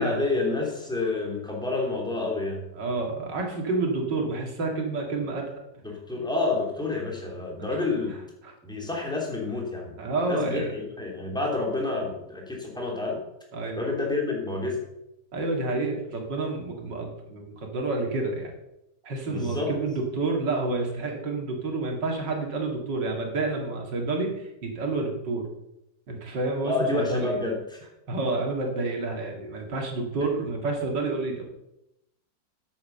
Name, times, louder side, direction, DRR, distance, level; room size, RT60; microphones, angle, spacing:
voice 1, 0.0-2.7 5.8-8.2 8.6-10.0 10.3-13.2 13.8-14.8 19.3-19.7 26.6-27.8, left 3 dB, ahead, -1 dB, 2.5 m, -29 dB
voice 2, 2.8-5.5 8.4-8.5 10.0-10.7 13.5-13.8 15.3-18.5 19.0-25.4 26.1-27.3 28.1-31.4, right 3 dB, 70° right, 1 dB, 2.8 m, -29 dB
8.5 x 8.3 x 6.7 m, 0.88 s
omnidirectional pair, 2.0 m